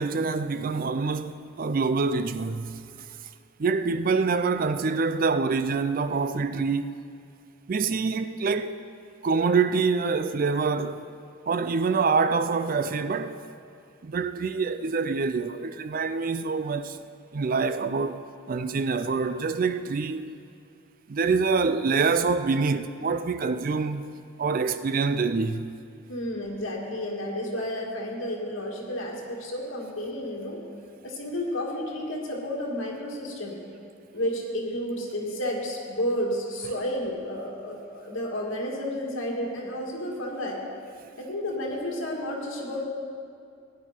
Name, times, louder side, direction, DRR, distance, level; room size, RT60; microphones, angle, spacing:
voice 1, 0.0-2.9 3.6-7.0 7.7-8.8 9.2-11.1 11.5-13.4 14.0-17.0 17.3-20.3 21.1-24.0 24.4-25.8, right 4 dB, 40° right, 0.4 m, -26 dB
voice 2, 26.1-30.6 31.0-33.6 34.1-40.6 41.2-42.9, left 1 dB, 70° left, 2.4 m, -31 dB
17.0 x 10.5 x 4.4 m
head